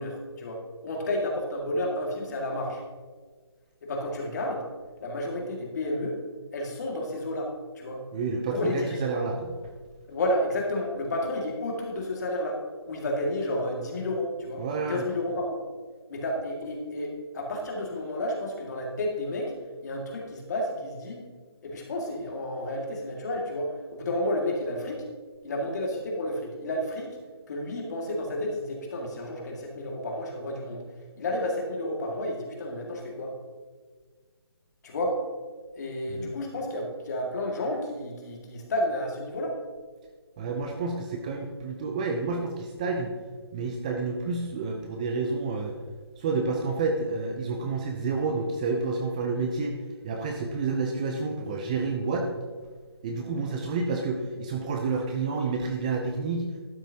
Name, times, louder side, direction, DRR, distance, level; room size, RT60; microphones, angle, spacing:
voice 1, 0.0-2.8 3.8-4.7 5.0-6.2 6.5-8.0 8.5-9.1 10.1-15.6 16.1-19.5 19.8-21.3 21.6-25.0 25.4-27.2 27.5-30.8 31.1-33.3 34.8-35.2 35.8-39.6, left 1 dB, 40° left, 0 dB, 2.0 m, -31 dB
voice 2, 8.1-9.5 14.6-15.0 36.1-36.3 40.4-43.1 43.5-45.8 46.2-49.7 50.0-52.3 53.0-56.5, right 4 dB, 15° right, 3 dB, 0.5 m, -29 dB
12.0 x 9.0 x 2.8 m, 1.5 s
hypercardioid pair, 160°, 14 cm